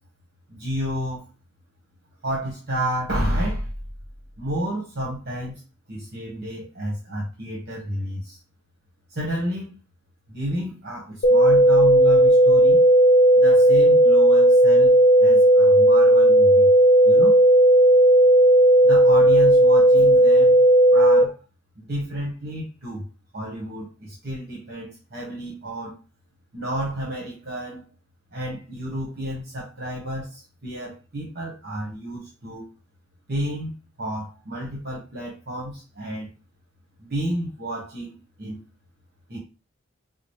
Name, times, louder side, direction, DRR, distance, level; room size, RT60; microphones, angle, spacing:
voice 1, 0.5-1.3 2.2-3.7 4.4-5.6 5.9-8.4 9.1-9.8 10.3-12.8 13.4-14.9 15.2-16.7 17.0-17.4 18.8-20.6 20.9-21.4 21.8-23.0 23.3-26.0 26.5-27.8 28.3-32.7 33.3-33.7 34.0-36.3 37.0-38.6 39.3-39.4, equal, 50° right, -3 dB, 1.2 m, -31 dB
sound 1, 11.2-21.2, right 1 dB, 55° left, 0.5 m, -14 dB
4.7 x 2.0 x 3.2 m, 0.31 s
head